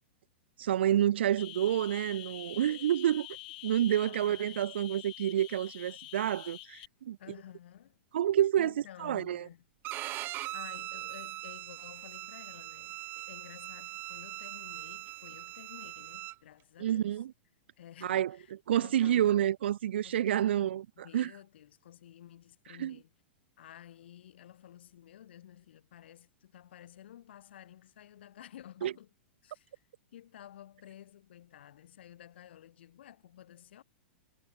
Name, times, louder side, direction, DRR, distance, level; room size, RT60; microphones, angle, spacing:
voice 1, 0.6-3.3 3.6-7.2 8.1-8.7 9.0-9.5 16.8-17.3 18.0-20.9 21.1-21.3 22.8-23.0 28.8-28.9, right 11 dB, 75° right, 0.5 m, -28 dB
sound 1, 1.4-6.9, left 20 dB, 55° left, 2.1 m, -47 dB
voice 2, 4.0-4.5 7.2-8.0 8.6-9.7 10.3-17.2 17.8-19.4 20.0-20.8 21.0-23.1 23.6-29.1 29.4-29.7 30.1-33.8, left 11 dB, 70° left, 3.9 m, -52 dB
Bowed string instrument, 9.8-16.4, right 17 dB, 35° right, 2.0 m, -41 dB
hypercardioid pair, 125°, 6 cm